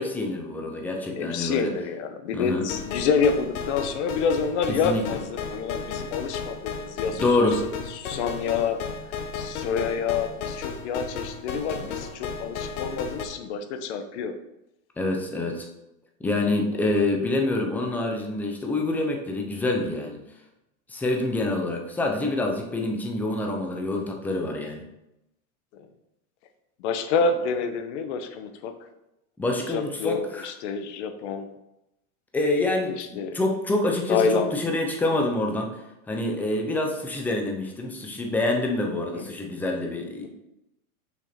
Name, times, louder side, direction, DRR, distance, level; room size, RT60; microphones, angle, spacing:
voice 1, 0.0-1.7 2.3-2.6 4.7-5.0 7.2-7.6 15.0-15.7 16.2-20.2 20.9-24.8 29.4-30.5 32.3-40.3, left 2 dB, 5° left, 2 dB, 0.6 m, -26 dB
voice 2, 1.0-7.5 7.9-8.8 9.3-14.3 25.7-25.9 26.8-28.7 29.7-31.5 32.7-33.4 34.1-34.6 39.1-39.3, left 5 dB, 50° left, 8 dB, 1.1 m, -28 dB
sound 1, 2.7-13.2, left 6 dB, 70° left, 1.3 m, -34 dB
6.3 x 6.2 x 4.4 m, 0.89 s
supercardioid pair, 150°, 44 cm